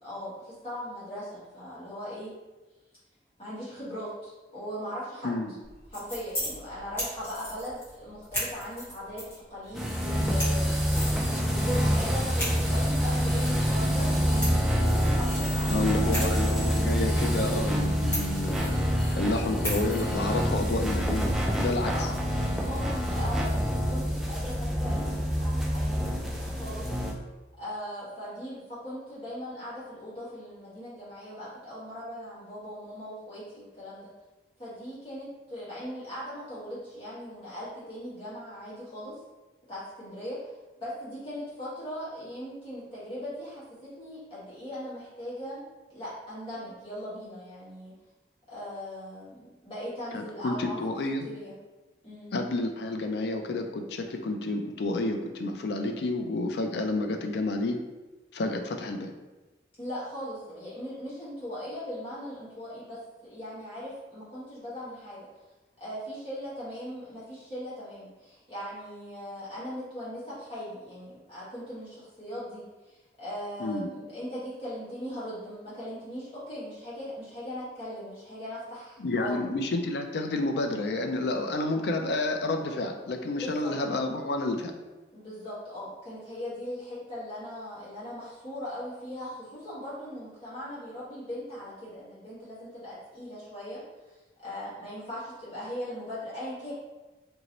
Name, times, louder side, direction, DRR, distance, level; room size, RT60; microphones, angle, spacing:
voice 1, 0.0-2.3 3.4-5.3 5.9-10.6 11.5-16.2 21.8-22.1 22.6-26.9 27.6-34.1 34.6-39.2 39.7-43.6 44.0-47.9 48.5-49.4 49.6-50.8 51.2-51.5 52.0-52.3 59.8-65.2 65.8-79.4 83.4-83.7 85.1-93.8 94.4-96.7, equal, 30° left, -11 dB, 1.5 m, -39 dB
sound 1, 5.6-22.5, equal, 15° left, 1.1 m, -40 dB
sound 2, 9.7-27.1, equal, ahead, 0.3 m, -27 dB
voice 2, 15.7-18.8 19.1-22.1 50.1-51.3 52.3-57.8 58.3-59.1 73.6-73.9 79.0-84.7, left 2 dB, 70° left, 4 dB, 0.4 m, -30 dB
2.9 x 2.7 x 2.9 m, 1.1 s
head